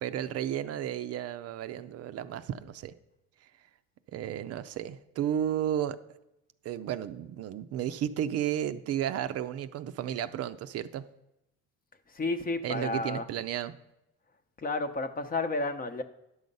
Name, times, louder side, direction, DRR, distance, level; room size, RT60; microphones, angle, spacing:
voice 1, 0.0-2.9 4.1-6.0 6.6-11.0 12.6-13.8, right 10 dB, 50° right, 11 dB, 0.6 m, -33 dB
voice 2, 12.1-13.3 14.6-16.0, left 2 dB, 30° left, 9 dB, 0.8 m, -31 dB
11.0 x 6.4 x 5.4 m, 0.88 s
cardioid pair, 110°, 30 cm